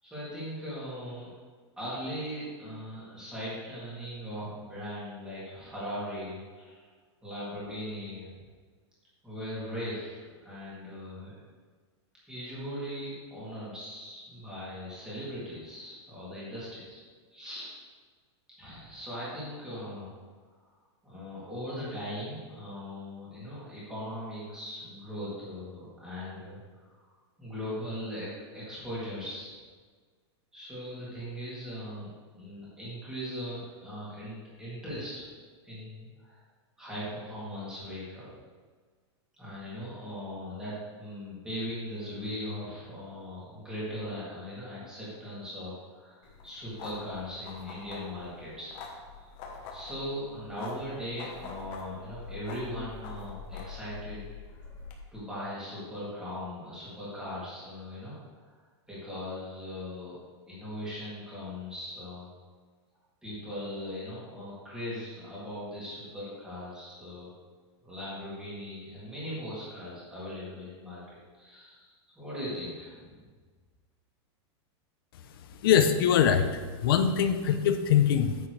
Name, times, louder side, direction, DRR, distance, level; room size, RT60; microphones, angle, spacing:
voice 1, 0.0-1.3 1.8-6.9 7.2-8.4 9.2-11.3 12.3-17.0 17.3-17.8 18.6-20.1 20.6-20.7 21.0-26.6 27.0-27.1 27.4-29.6 30.5-35.3 35.6-36.4 36.8-38.3 39.3-48.8 49.1-49.3 49.7-54.3 55.1-58.5 58.9-60.2 60.5-62.3 63.2-67.3 67.8-73.2, equal, 5° right, -9 dB, 2.8 m, -39 dB
sound 1, 46.2-54.9, left 4 dB, 30° left, 1.2 m, -45 dB
voice 2, 75.6-78.4, left 8 dB, 50° left, 9 dB, 0.7 m, -23 dB
9.7 x 8.6 x 3.3 m, 1.5 s
supercardioid pair, 180°, 15 cm